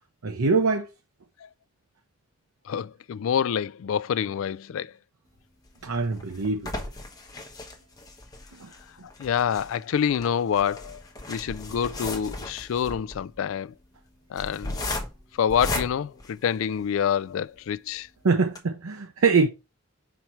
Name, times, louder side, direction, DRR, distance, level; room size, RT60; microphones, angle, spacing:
voice 1, 0.2-0.9 5.8-6.6 8.6-8.7 18.2-19.5, right 4 dB, 90° right, 0.8 m, -23 dB
voice 2, 2.7-4.9 9.2-11.0 11.3-13.7 14.3-14.8 15.4-18.1, left 8 dB, 70° left, 0.3 m, -27 dB
sound 1, 5.6-17.0 17.6-17.7 18.0-18.1 18.4-18.6, left 2 dB, 15° left, 1.0 m, -36 dB
5.6 x 4.5 x 4.5 m
head